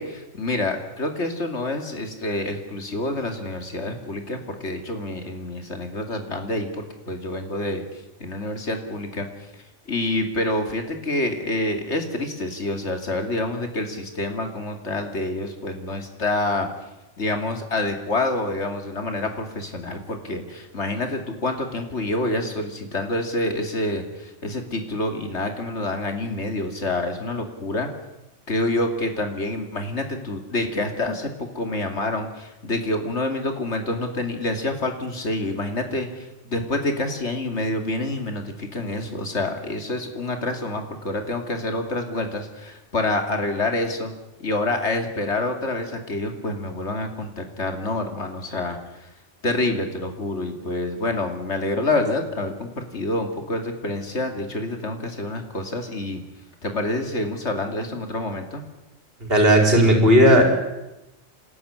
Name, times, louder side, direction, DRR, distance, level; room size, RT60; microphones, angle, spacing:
voice 1, 0.0-7.8 8.2-9.3 9.9-16.7 17.2-27.9 28.5-44.1 44.4-48.8 49.4-56.2 56.6-58.6, left 2 dB, 70° left, 5 dB, 2.9 m, -27 dB
voice 2, 59.3-60.4, equal, 55° right, 2 dB, 5.1 m, -14 dB
27.5 x 13.0 x 10.0 m, 0.97 s
omnidirectional pair, 1.2 m